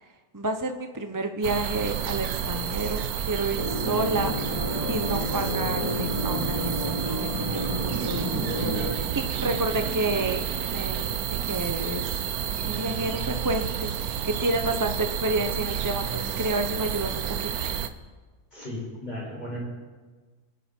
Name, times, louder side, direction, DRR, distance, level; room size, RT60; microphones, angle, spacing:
voice 1, 0.3-4.4 4.9-11.2 11.5-12.2 12.6-17.5, right 2 dB, 20° right, 6 dB, 0.7 m, -30 dB
sound 1, 1.4-17.9, right 9 dB, 80° right, 1.3 m, -30 dB
sound 2, 3.5-8.9, equal, 80° left, 2.3 m, -31 dB
voice 2, 18.5-19.6, left 1 dB, 30° left, -5 dB, 6.3 m, -35 dB
28.0 x 10.0 x 4.5 m, 1.4 s
omnidirectional pair, 1.6 m